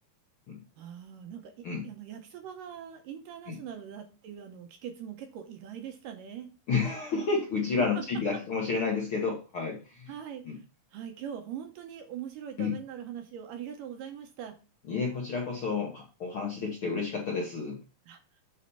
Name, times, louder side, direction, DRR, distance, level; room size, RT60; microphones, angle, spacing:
voice 1, 0.8-1.5 1.8-6.5 8.0-8.1 8.3-8.4 10.1-10.6 10.9-14.6 18.1-18.2, right 9 dB, 75° right, 6 dB, 2.3 m, -42 dB
voice 2, 6.7-10.1 10.4-10.6 12.6-12.7 14.9-17.8, left 4 dB, 60° left, -2 dB, 1.4 m, -30 dB
8.4 x 4.1 x 5.5 m, 0.33 s
omnidirectional pair, 4.4 m